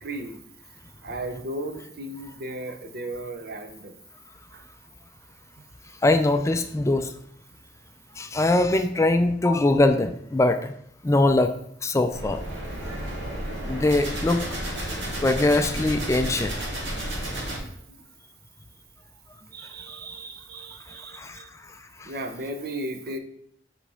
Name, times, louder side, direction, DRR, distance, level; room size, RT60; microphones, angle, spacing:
voice 1, 0.0-0.4 1.0-3.9 4.5-4.6 17.6-18.0 19.5-21.5 22.0-23.2, right 1 dB, 55° right, 6 dB, 0.7 m, -35 dB
voice 2, 6.0-7.1 8.2-10.7 11.0-11.5 11.8-12.4 13.7-14.4 15.2-16.6 21.1-21.4 22.0-22.1, left 2 dB, 15° left, 7 dB, 0.3 m, -22 dB
sound 1, 12.1-17.6, right 1 dB, 80° right, 2.2 m, -32 dB
7.5 x 4.8 x 3.4 m, 0.70 s
head